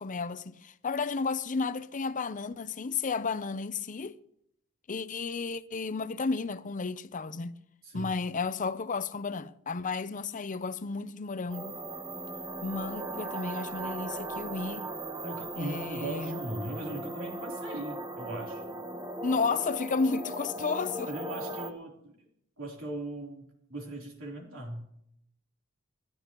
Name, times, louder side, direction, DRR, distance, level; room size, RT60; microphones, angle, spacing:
voice 1, 0.0-4.2 4.9-7.6 7.9-11.8 12.6-14.9 15.6-16.4 19.2-21.1, left 4 dB, 40° left, 0.6 m, -32 dB
voice 2, 7.8-8.1 15.2-18.6 21.1-22.3 22.6-24.8, right 1 dB, 70° right, 3.6 m, -39 dB
sound 1, 11.5-21.7, right 1 dB, 20° right, 1.1 m, -38 dB
29.0 x 11.5 x 3.0 m
head